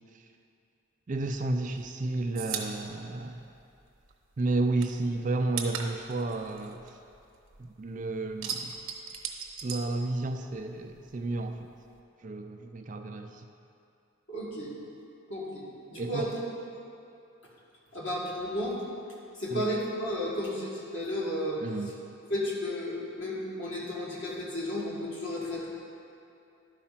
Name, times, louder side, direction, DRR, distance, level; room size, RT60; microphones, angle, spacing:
voice 1, 1.1-3.4 4.4-7.0 7.6-8.7 9.6-11.7 12.2-13.4 16.0-16.3 19.5-19.7 21.6-21.9, right 2 dB, 35° right, 5 dB, 0.4 m, -32 dB
sound 1, 1.3-4.1 4.4-7.7 8.0-10.6 10.9-12.0, right 7 dB, 80° right, 0.9 m, -39 dB
voice 2, 14.3-14.7 15.3-16.3 17.9-18.8 19.4-21.6 22.3-25.7, left 1 dB, 60° left, -5 dB, 1.8 m, -33 dB
11.0 x 4.9 x 5.8 m, 2.6 s
head